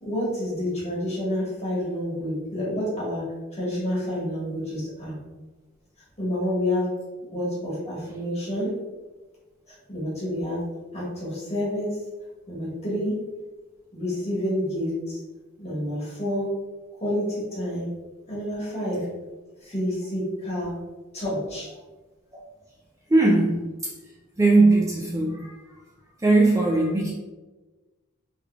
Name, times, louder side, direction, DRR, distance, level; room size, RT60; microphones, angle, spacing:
voice 1, 0.0-3.2 3.5-5.2 6.2-6.9 7.3-8.7 9.9-10.6 10.9-11.9 12.5-13.2 13.9-15.2 15.6-16.5 16.9-17.9 18.3-19.1 19.6-20.7 21.1-21.7, left 1 dB, 30° left, -6 dB, 1.4 m, -28 dB
voice 2, 23.1-23.7 24.4-25.6 26.2-27.1, right 2 dB, 15° right, -3 dB, 0.3 m, -19 dB
3.6 x 3.3 x 2.3 m, 1.2 s
head